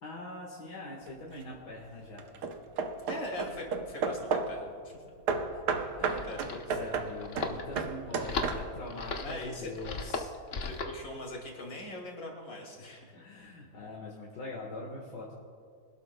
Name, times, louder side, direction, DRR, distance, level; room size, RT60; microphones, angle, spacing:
voice 1, 0.0-2.2 5.5-10.7 13.1-15.3, left 2 dB, 80° left, -3 dB, 2.2 m, -43 dB
Hammer / Wood, 1.1-1.5 2.2-4.6 5.3-8.9, right 5 dB, 75° right, 1.4 m, -33 dB
voice 2, 3.1-5.0 6.0-6.6 9.2-9.7 10.0-10.1 10.7-13.1, left 1 dB, 65° left, 0 dB, 2.8 m, -41 dB
sound 1, 5.8-11.0, left 4 dB, 45° left, 0.9 m, -37 dB
25.0 x 12.0 x 2.2 m, 2.2 s
omnidirectional pair, 1.8 m